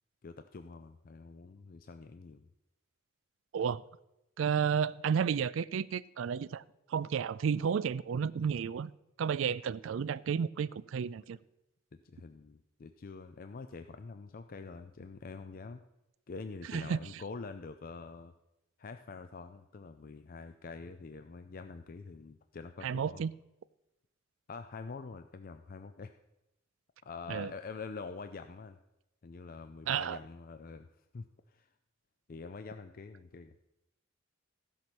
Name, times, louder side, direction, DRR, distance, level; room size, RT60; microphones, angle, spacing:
voice 1, 0.2-2.5 11.9-15.8 16.3-18.3 18.8-23.2 24.5-26.1 27.0-28.8 29.2-30.9 31.1-31.7 32.3-33.6, left 4 dB, 45° left, 0.4 m, -46 dB
voice 2, 4.4-6.6 6.9-8.9 9.2-11.4 16.7-17.0 22.8-23.3 27.3-27.5 29.9-30.2, right 7 dB, 75° right, 0.3 m, -32 dB
15.0 x 5.8 x 6.2 m
head